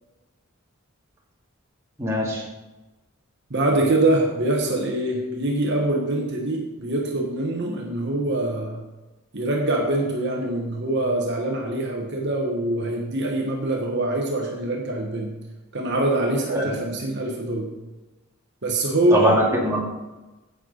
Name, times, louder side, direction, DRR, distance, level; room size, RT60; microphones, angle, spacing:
voice 1, 2.0-2.4 16.5-16.6 19.1-19.8, equal, 15° right, -4 dB, 2.1 m, -21 dB
voice 2, 3.5-8.8 9.3-15.3 15.7-17.7 18.6-19.4, right 1 dB, 55° right, 0 dB, 1.4 m, -24 dB
9.8 x 8.2 x 4.1 m, 1.1 s
head